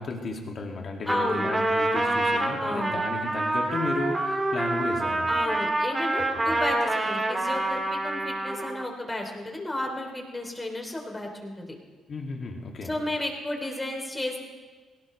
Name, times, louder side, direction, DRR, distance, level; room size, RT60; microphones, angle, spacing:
voice 1, 0.0-5.4 6.2-6.7 12.1-12.9, left 3 dB, 50° left, 1 dB, 2.4 m, -34 dB
Trumpet, 1.0-8.9, right 2 dB, 20° right, 2.0 m, -27 dB
voice 2, 1.1-1.5 2.6-3.0 5.3-11.7 12.8-14.4, left 1 dB, 15° left, 2 dB, 3.2 m, -32 dB
18.0 x 17.5 x 3.3 m, 1.4 s
cardioid pair, 90°, 0 cm